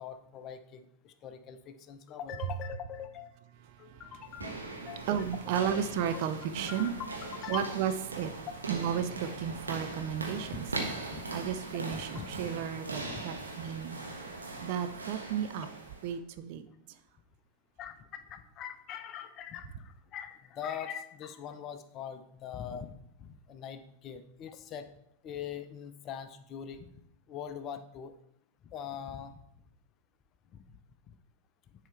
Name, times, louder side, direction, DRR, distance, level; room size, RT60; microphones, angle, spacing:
voice 1, 0.0-3.3 3.8-5.1 5.5-5.8 6.1-6.3 6.7-7.7 10.5-10.6 11.1-11.3 11.9-12.4 13.0-13.5 15.6-15.7 17.8-22.9 23.2-24.9 25.2-26.9 27.3-28.1 28.6-29.4 30.5-30.6 31.1-31.2, left 8 dB, 35° left, 10 dB, 0.6 m, -42 dB
sound 1, 4.2-16.1, right 3 dB, 75° right, 1.3 m, -40 dB
voice 2, 5.1-6.9 7.5-8.4 8.7-10.7 11.0-14.0 14.6-15.7 16.0-16.6, right 8 dB, 45° right, 9 dB, 0.6 m, -33 dB
10.5 x 4.8 x 3.3 m, 0.76 s
figure-of-eight pair, 90°, 0 cm